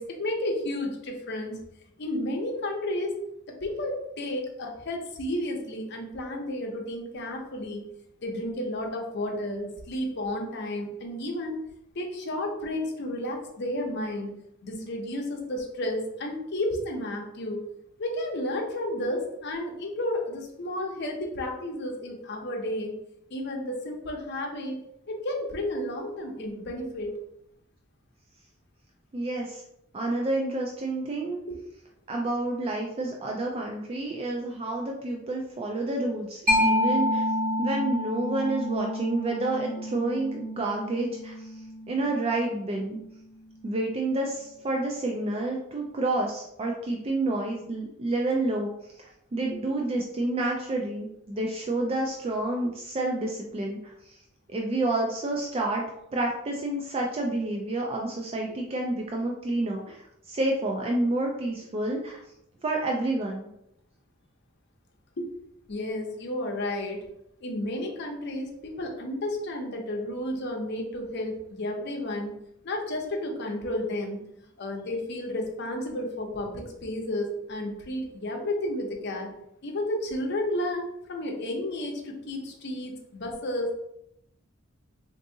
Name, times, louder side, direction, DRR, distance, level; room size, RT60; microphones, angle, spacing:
voice 1, 0.0-1.6 2.0-3.2 3.5-7.9 8.2-11.7 12.0-14.3 14.6-17.6 18.0-23.0 23.3-24.8 25.1-27.2 31.4-31.6 49.5-49.6 65.2-65.3 65.7-67.0 67.4-72.3 72.6-74.2 74.6-79.3 79.6-83.7, left 1 dB, 55° left, 1 dB, 0.7 m, -32 dB
voice 2, 29.1-29.6 29.9-31.4 32.1-37.3 37.6-41.6 41.9-43.0 43.6-54.2 54.5-55.8 56.1-62.2 62.6-63.5, right 2 dB, 30° right, 0 dB, 0.3 m, -29 dB
Mallet percussion, 36.5-43.7, left 1 dB, 45° right, 1.1 m, -29 dB
3.5 x 2.6 x 2.7 m, 0.79 s
head